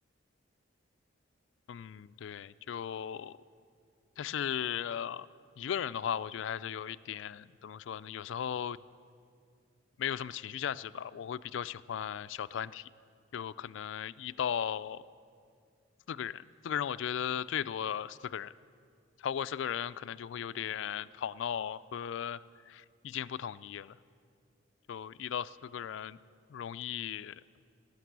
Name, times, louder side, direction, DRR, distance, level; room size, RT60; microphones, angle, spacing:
voice 1, 1.7-3.4 4.2-5.3 5.6-8.8 10.0-12.9 13.3-15.0 16.1-18.5 19.2-24.0 24.9-26.2 26.5-27.4, left 9 dB, 70° left, 15 dB, 0.3 m, -37 dB
17.5 x 6.8 x 9.4 m, 2.3 s
head